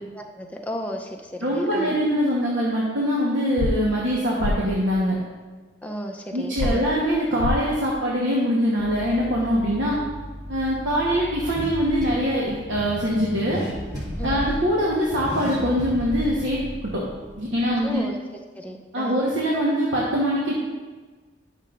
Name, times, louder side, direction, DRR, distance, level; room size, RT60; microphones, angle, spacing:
voice 1, 0.2-2.0 5.8-6.9 9.8-10.0 14.2-14.5 17.8-19.2, equal, 10° left, 2 dB, 0.6 m, -34 dB
voice 2, 1.4-5.2 6.3-10.0 10.5-13.6 14.2-17.0 17.4-18.0 18.9-20.5, equal, 70° right, -5 dB, 1.2 m, -23 dB
sound 1, 3.6-3.7 4.4-4.5 6.6-6.7 7.4-7.6, left 2 dB, 85° left, 0.5 m, -23 dB
Car / Accelerating revving vroom, 8.8-18.0, equal, 20° right, 1.7 m, -35 dB
10.5 x 6.5 x 2.5 m, 1.4 s
head